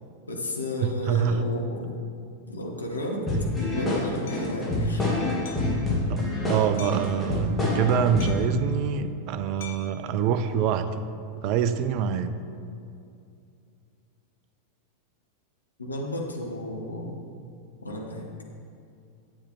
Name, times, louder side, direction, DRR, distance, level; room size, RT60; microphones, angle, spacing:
voice 1, 0.3-1.9 2.5-3.3 3.6-5.2 15.8-17.2 17.8-18.3, left 1 dB, 80° left, 0 dB, 1.1 m, -32 dB
voice 2, 1.1-1.4 6.1-11.1 11.3-12.3, right 7 dB, 40° right, 11 dB, 0.4 m, -25 dB
sound 1, 3.3-8.5, left 2 dB, 10° left, 2.1 m, -27 dB
Hammer, 4.3-4.5 5.5-5.8 6.8-7.1 8.2-8.6 9.6-10.0, left 8 dB, 55° left, 0.8 m, -44 dB
9.7 x 8.1 x 3.2 m, 2.5 s
figure-of-eight pair, 90°, 0 cm